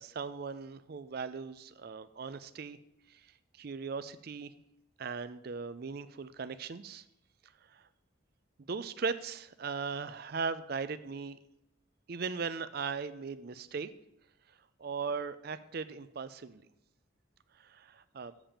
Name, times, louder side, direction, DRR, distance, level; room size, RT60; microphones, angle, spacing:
voice 1, 0.0-2.8 3.1-3.2 3.6-4.5 5.0-7.0 8.7-11.4 12.1-13.9 14.8-16.6 17.6-18.3, right 5 dB, 50° right, 13 dB, 0.4 m, -38 dB
7.3 x 5.2 x 7.2 m, 0.83 s
head